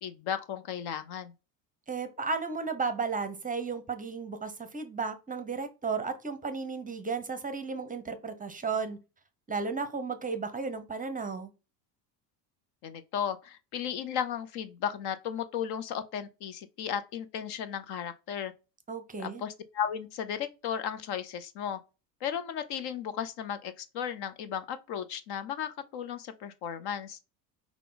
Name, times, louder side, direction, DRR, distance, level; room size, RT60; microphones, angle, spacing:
voice 1, 0.0-1.3 12.8-18.5 19.2-21.8 22.2-27.2, left 8 dB, 50° left, 0.7 m, -35 dB
voice 2, 1.9-9.0 9.5-11.5 18.9-19.4, right 4 dB, 15° right, 0.7 m, -34 dB
5.6 x 2.3 x 3.8 m
hypercardioid pair, 85°, 50 cm